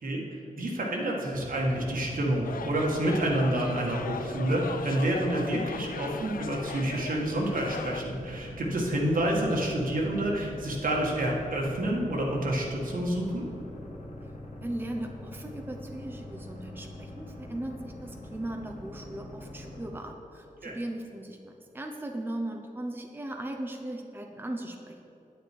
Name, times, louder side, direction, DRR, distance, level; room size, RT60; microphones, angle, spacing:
voice 1, 0.0-13.4 20.6-20.8, right 1 dB, 75° right, -2 dB, 1.8 m, -28 dB
sound 1, 1.3-19.9, left 1 dB, 60° left, 2.0 m, -43 dB
sound 2, 2.4-8.0, left 6 dB, 80° left, 0.4 m, -39 dB
voice 2, 14.6-25.0, right 1 dB, 15° right, 3 dB, 0.7 m, -38 dB
9.4 x 9.3 x 4.6 m, 2.9 s
wide cardioid pair, 135°, 14 cm